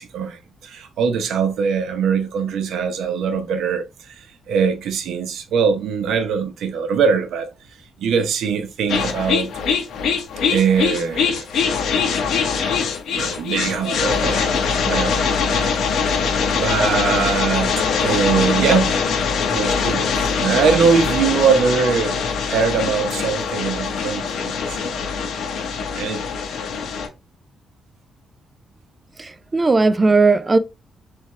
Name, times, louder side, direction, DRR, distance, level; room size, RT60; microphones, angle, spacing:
voice 1, 0.0-7.5 8.0-9.5 10.5-11.5 13.1-19.0 19.5-25.0 25.7-26.7, right 6 dB, 75° right, 0.7 m, -22 dB
sound 1, 8.9-27.1, left 6 dB, 70° left, 0.9 m, -22 dB
voice 2, 29.2-30.6, right 3 dB, 20° right, 0.4 m, -16 dB
3.4 x 3.4 x 3.2 m
cardioid pair, 165°, 0 cm